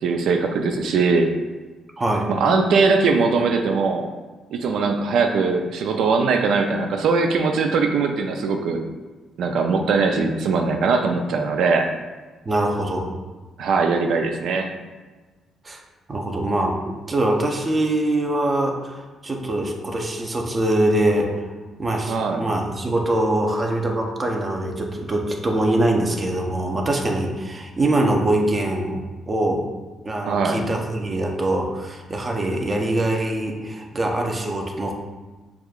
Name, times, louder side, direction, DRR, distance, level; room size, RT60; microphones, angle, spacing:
voice 1, 0.0-1.3 2.3-4.1 4.5-8.8 9.4-11.9 13.6-14.7 22.1-22.4 30.2-30.6, right 4 dB, 75° right, 4 dB, 0.3 m, -20 dB
voice 2, 2.0-2.3 12.4-13.1 15.6-15.8 16.1-21.3 21.8-29.6 30.0-34.9, right 1 dB, 30° right, 2 dB, 0.6 m, -23 dB
6.1 x 2.3 x 2.3 m, 1.3 s
cardioid pair, 90°, 0 cm